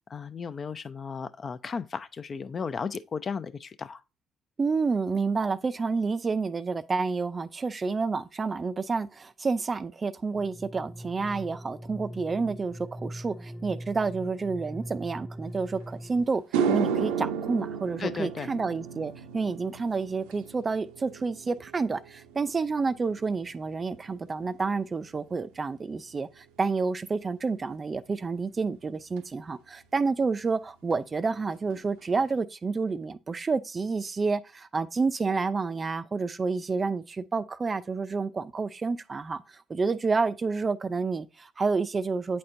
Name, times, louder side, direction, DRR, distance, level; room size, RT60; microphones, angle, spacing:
voice 1, 0.1-4.0 18.0-18.5, left 5 dB, 40° left, 0.5 m, -35 dB
voice 2, 4.6-42.4, right 4 dB, 30° right, 0.4 m, -29 dB
sound 1, 10.3-16.3, equal, ahead, 0.9 m, -41 dB
sound 2, 15.8-15.9 16.3-24.8 25.1-25.6 29.2-29.3 30.9-31.0 31.3-31.4 31.7-32.2, right 7 dB, 80° right, 0.6 m, -34 dB
8.4 x 4.3 x 2.6 m
hypercardioid pair, 60°, 0 cm